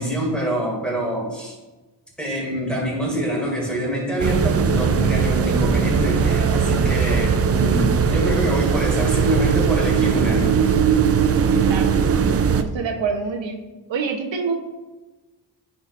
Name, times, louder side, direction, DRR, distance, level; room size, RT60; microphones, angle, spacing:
voice 1, 0.0-1.5 2.2-10.6, equal, ahead, -4 dB, 2.3 m, -25 dB
sound 1, 4.2-12.6, right 6 dB, 35° right, 0.4 m, -19 dB
voice 2, 11.6-12.0 12.6-13.6 13.9-14.5, right 5 dB, 80° right, 4 dB, 0.9 m, -26 dB
9.8 x 5.0 x 2.5 m, 1.2 s
wide cardioid pair, 125°, 44 cm